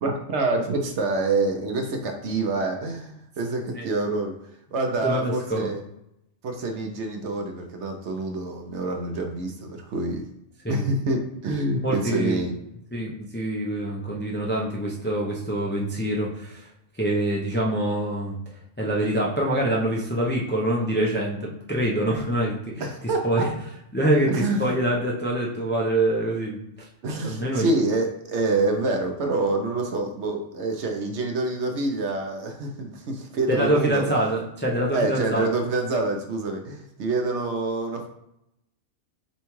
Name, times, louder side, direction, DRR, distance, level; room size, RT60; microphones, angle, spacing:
voice 1, 0.0-4.3 4.7-5.8 6.4-10.3 10.7-12.5 22.8-23.5 24.3-24.7 27.0-34.0 34.9-38.1, right 2 dB, 65° right, 4 dB, 0.9 m, -26 dB
voice 2, 5.0-5.7 10.6-10.8 11.7-12.4 12.9-16.7 17.0-18.4 18.8-22.8 23.2-23.5 23.9-26.6 27.2-27.7 33.5-35.5, right 1 dB, 20° left, -3 dB, 0.3 m, -25 dB
6.9 x 2.3 x 3.1 m, 0.80 s
omnidirectional pair, 1.3 m